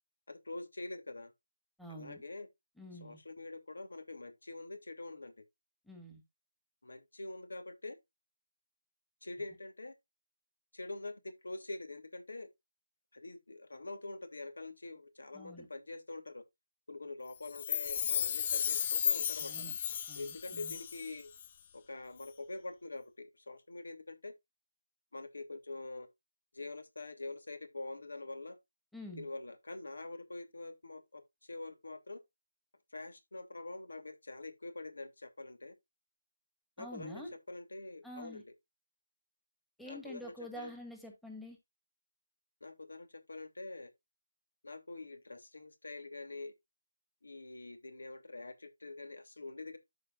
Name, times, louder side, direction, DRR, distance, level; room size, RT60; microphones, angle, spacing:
voice 1, 0.3-1.3 1.9-2.5 3.0-5.4 6.8-8.0 9.2-9.9 10.7-12.5 13.1-16.4 16.9-19.7 20.2-21.3 21.7-24.3 25.1-26.1 26.5-28.6 29.2-32.2 32.9-35.7 36.8-38.4 39.8-40.7 42.6-43.9 44.6-46.5 47.2-49.8, left 2 dB, 80° left, 2.7 m, -45 dB
voice 2, 1.8-2.2 2.8-3.2 5.8-6.2 15.3-15.7 19.4-19.7 20.1-20.8 28.9-29.3 36.8-37.4 38.0-38.4 39.8-41.6, equal, ahead, 1.6 m, -47 dB
Chime, 17.5-21.1 21.4-21.5, left 8 dB, 30° left, 0.5 m, -34 dB
13.5 x 5.0 x 2.5 m
figure-of-eight pair, 165°, 0 cm